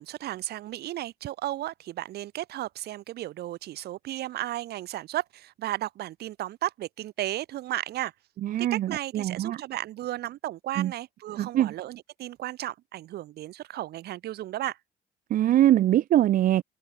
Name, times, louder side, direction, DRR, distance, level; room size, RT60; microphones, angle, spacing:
voice 1, 0.0-8.1 8.6-14.8, right 14 dB, 70° right, 5.2 m, -34 dB
voice 2, 8.4-9.6 10.8-10.9 11.4-11.7 15.3-16.6, right 12 dB, 55° right, 0.6 m, -23 dB
open air
cardioid pair, 110°, 17 cm